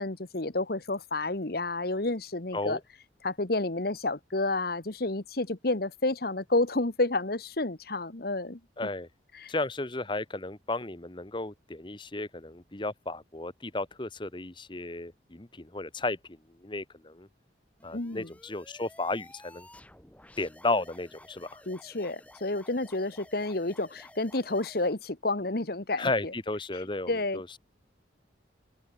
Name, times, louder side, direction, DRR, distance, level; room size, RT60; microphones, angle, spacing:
voice 1, 0.0-2.8 3.2-8.6 9.3-9.5 17.9-18.3 21.7-26.3 27.1-27.4, left 2 dB, 55° left, 1.4 m, -30 dB
voice 2, 8.8-9.1 9.5-17.3 17.8-19.7 20.4-21.6 26.0-27.6, left 2 dB, 25° left, 1.1 m, -34 dB
sound 1, 17.8-25.0, left 1 dB, 5° left, 2.5 m, -54 dB
open air
head